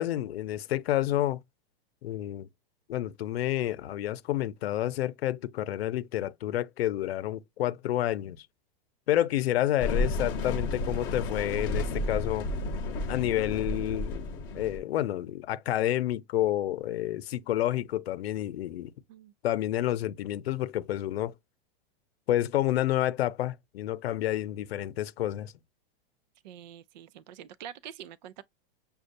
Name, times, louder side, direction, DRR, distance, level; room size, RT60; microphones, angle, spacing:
voice 1, 0.0-1.4 2.0-2.5 2.9-8.5 9.1-12.5 13.1-14.3 14.6-18.9 19.4-21.3 22.3-25.5, left 13 dB, 85° left, 0.7 m, -29 dB
sound 1, 9.8-14.8, left 2 dB, 15° left, 0.8 m, -31 dB
voice 2, 26.4-28.4, right 10 dB, 50° right, 0.5 m, -45 dB
6.5 x 2.4 x 2.6 m
supercardioid pair, 175°, 30 cm